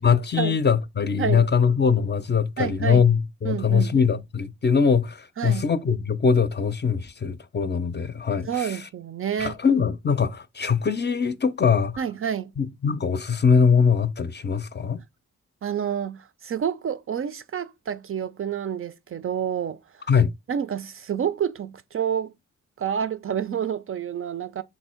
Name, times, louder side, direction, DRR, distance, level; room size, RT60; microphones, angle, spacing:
voice 1, 0.0-8.8 9.4-12.0 12.6-15.0 20.1-20.3, left 6 dB, 35° left, 0.5 m, -22 dB
voice 2, 2.6-3.0 3.4-3.9 5.4-5.6 8.4-9.5 12.0-12.5 15.6-19.8 20.5-22.3 22.8-24.6, right 8 dB, 45° right, 0.4 m, -28 dB
3.0 x 2.6 x 4.3 m
supercardioid pair, 50°, 32 cm